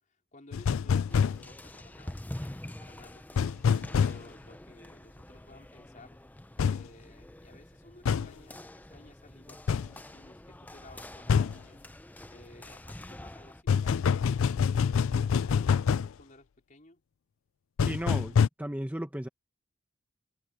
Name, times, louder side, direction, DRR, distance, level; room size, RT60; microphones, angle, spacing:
voice 1, 0.0-6.2 6.6-17.0, left 2 dB, 40° left, 4.3 m, -56 dB
sound 1, 0.5-1.4 3.4-4.2 6.6-6.8 8.1-8.3 9.7-9.9 11.3-11.6 13.7-16.1 17.8-18.5, left 6 dB, 75° left, 0.4 m, -25 dB
sound 2, 1.1-13.6, left 1 dB, 10° left, 0.5 m, -46 dB
voice 2, 17.8-19.3, right 1 dB, 5° right, 1.0 m, -35 dB
head